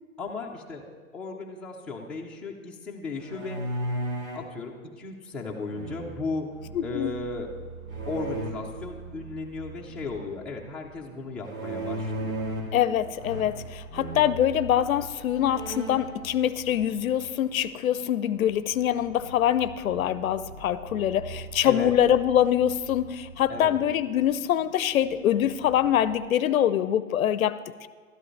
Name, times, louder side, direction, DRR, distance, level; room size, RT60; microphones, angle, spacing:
voice 1, 0.2-0.9 1.1-3.6 4.3-6.5 6.8-7.5 8.1-12.5 21.6-21.9 23.5-23.8, left 3 dB, ahead, -3 dB, 0.5 m, -35 dB
sound 1, 3.2-4.5 5.7-6.4 7.9-8.5 11.4-12.8 13.2-13.7 13.9-14.3 14.9-15.0 15.4-16.1, right 1 dB, 70° right, 2.4 m, -34 dB
sound 2, 6.5-26.2, right 3 dB, 90° right, 1.5 m, -45 dB
voice 2, 6.7-7.1 12.7-27.9, left 10 dB, 75° left, 15 dB, 0.6 m, -24 dB
12.5 x 11.0 x 3.2 m, 1.5 s
hypercardioid pair, 125°, 41 cm